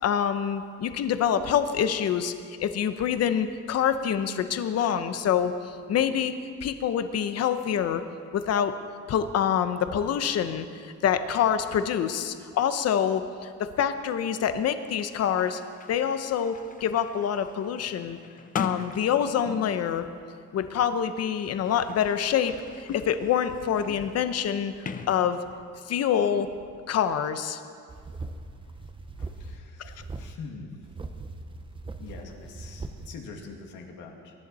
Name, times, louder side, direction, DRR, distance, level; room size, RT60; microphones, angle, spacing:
voice 1, 0.0-6.3 6.6-8.0 8.3-8.8 9.1-13.2 13.8-15.6 15.9-16.5 16.8-18.2 18.5-20.0 20.5-24.7 25.1-25.4 25.9-26.5 26.9-27.6 29.8-29.9, left 8 dB, 50° left, 10 dB, 0.8 m, -26 dB
Sliding door, 14.9-19.9 20.8-25.8, left 5 dB, 25° left, 0.6 m, -42 dB
sound 1, 27.9-29.6 29.8-30.3 30.8-33.1, right 3 dB, 15° right, 0.7 m, -40 dB
voice 2, 29.2-30.7 32.0-34.3, left 4 dB, 75° left, 2 dB, 2.2 m, -44 dB
23.0 x 11.5 x 4.2 m, 2.2 s
cardioid pair, 150°, 32 cm